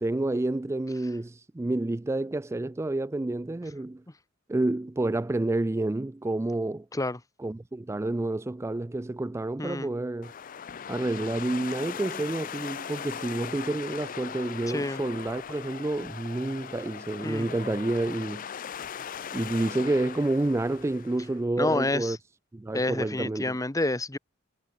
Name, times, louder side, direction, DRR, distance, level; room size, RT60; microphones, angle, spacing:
voice 1, 0.0-4.0 4.5-6.9 7.4-10.3 10.9-18.5 19.3-22.2 22.5-23.5, right 2 dB, 15° right, 0.3 m, -29 dB
voice 2, 9.6-9.9 14.7-15.0 17.2-17.5 21.6-22.2 22.7-24.2, left 2 dB, 15° left, 1.0 m, -28 dB
sound 1, 10.2-21.4, left 8 dB, 45° left, 0.5 m, -39 dB
head